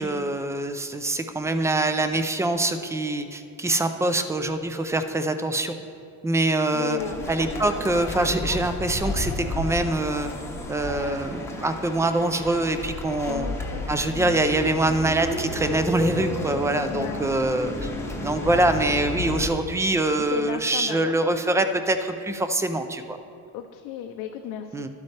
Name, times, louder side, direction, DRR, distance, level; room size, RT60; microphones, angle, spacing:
voice 1, 0.0-5.8 6.2-7.0 7.3-10.3 10.7-13.5 13.9-17.9 18.2-23.2 24.7-24.9, right 2 dB, 10° right, 9 dB, 0.3 m, -24 dB
voice 2, 6.7-7.2 13.2-13.9 14.1-14.4 16.9-17.3 17.8-18.1 20.2-21.1 23.5-24.9, left 10 dB, 85° left, 3 dB, 0.7 m, -34 dB
sound 1, 7.0-19.5, left 1 dB, 10° left, 0.9 m, -32 dB
12.5 x 8.4 x 3.3 m, 2.6 s
cardioid pair, 145°, 33 cm